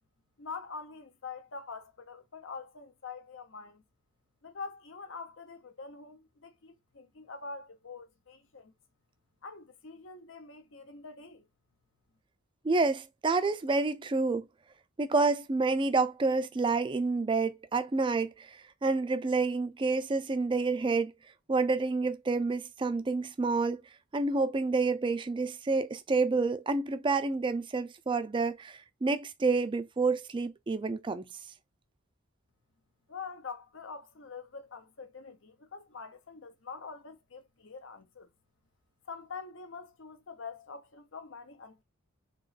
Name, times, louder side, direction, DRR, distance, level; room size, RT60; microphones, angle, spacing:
voice 1, 0.4-3.8 4.4-8.7 9.4-11.5 33.1-38.3 39.1-41.8, left 4 dB, 65° left, 0.8 m, -45 dB
voice 2, 12.6-14.4 15.0-18.5 18.8-21.1 21.5-23.8 24.1-31.3, right 3 dB, 25° right, 0.4 m, -28 dB
3.8 x 3.0 x 2.4 m
head